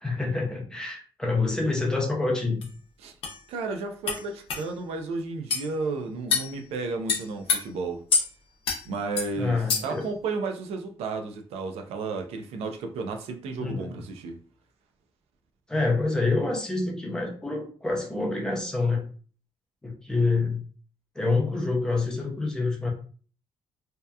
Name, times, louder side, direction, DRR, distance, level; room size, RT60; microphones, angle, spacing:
voice 1, 0.0-2.7 9.4-10.1 13.6-14.0 15.7-19.0 19.8-20.6 21.2-22.9, left 3 dB, 5° left, 0 dB, 0.5 m, -27 dB
sound 1, 2.6-2.7 3.2-3.4 4.1-4.2 4.5-4.6 5.5-5.7 6.3-6.5 7.1-7.6 8.1-8.3 8.7-8.8 9.2-9.3 9.7-10.0, left 5 dB, 65° left, 0.6 m, -25 dB
voice 2, 3.5-8.0 8.8-14.3, right 4 dB, 85° right, 5 dB, 0.4 m, -33 dB
2.7 x 2.2 x 2.2 m, 0.42 s
cardioid pair, 175°, 10 cm